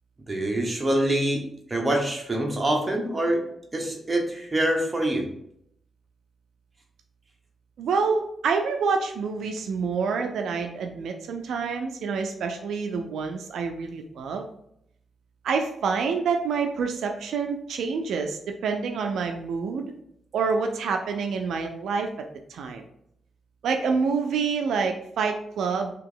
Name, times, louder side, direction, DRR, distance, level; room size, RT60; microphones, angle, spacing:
voice 1, 0.3-3.4 3.7-5.3, right 1 dB, 20° right, 1 dB, 0.9 m, -25 dB
voice 2, 7.8-14.5 15.4-19.9 20.3-22.1 22.5-22.8 23.6-25.9, right 5 dB, 80° right, 4 dB, 0.4 m, -27 dB
2.9 x 2.8 x 3.8 m, 0.72 s
cardioid pair, 95°, 0 cm